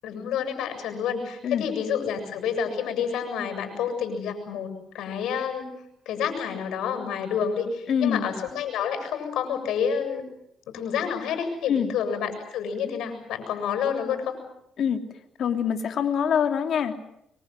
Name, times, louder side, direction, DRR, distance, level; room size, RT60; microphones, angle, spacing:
voice 1, 0.0-5.7 6.1-10.2 10.7-14.4, left 7 dB, 85° left, 7 dB, 7.2 m, -29 dB
voice 2, 7.9-8.3 11.7-11.9 14.8-15.0 15.4-17.1, left 7 dB, 65° left, 6 dB, 3.1 m, -24 dB
25.0 x 24.0 x 7.8 m, 0.79 s
cardioid pair, 90°, 0 cm